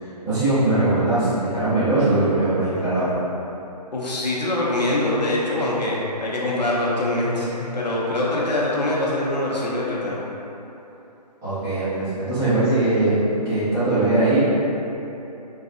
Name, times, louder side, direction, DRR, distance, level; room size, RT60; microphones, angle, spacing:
voice 1, 0.0-3.1 11.4-14.4, right 2 dB, 15° right, -15 dB, 1.0 m, -21 dB
voice 2, 3.9-10.2, left 1 dB, 80° left, -5 dB, 0.7 m, -24 dB
4.0 x 2.3 x 2.6 m, 3.0 s
figure-of-eight pair, 140°, 21 cm